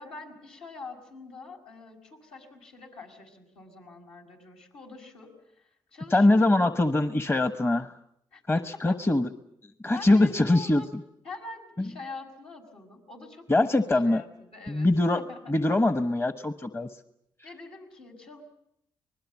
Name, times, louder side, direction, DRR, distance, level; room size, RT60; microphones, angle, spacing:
voice 1, 0.0-6.7 8.3-9.0 9.9-10.9 11.2-14.9 15.1-15.4 17.4-18.4, left 3 dB, 75° left, 0 dB, 5.7 m, -45 dB
voice 2, 6.1-7.9 8.5-9.3 9.8-11.0 11.8-11.9 13.5-14.2 14.7-15.2 15.5-16.9, left 2 dB, 25° left, 10 dB, 1.1 m, -23 dB
25.5 x 20.5 x 7.3 m, 0.77 s
supercardioid pair, 55°, 10 cm